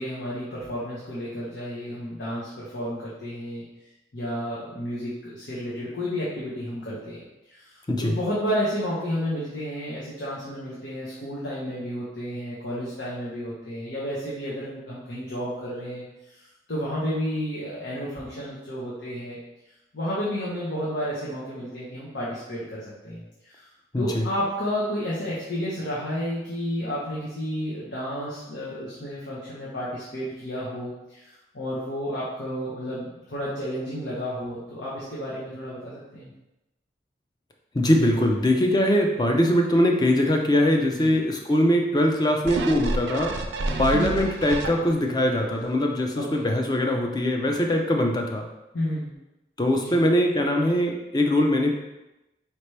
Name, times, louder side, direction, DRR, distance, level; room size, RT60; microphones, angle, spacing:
voice 1, 0.0-3.6 4.1-7.2 7.5-16.0 16.7-19.4 19.9-23.6 24.0-36.3 40.9-41.1 43.6-43.8 46.2-46.4 48.7-49.1 49.8-50.0, equal, 90° left, -8 dB, 1.0 m, -31 dB
voice 2, 23.9-24.3 37.7-43.3 43.8-48.5 49.6-51.7, left 1 dB, 25° left, 2 dB, 0.5 m, -22 dB
sound 1, 42.5-45.2 45.6-45.7, right 2 dB, 90° right, 0.5 m, -29 dB
5.0 x 2.9 x 3.3 m, 0.96 s
head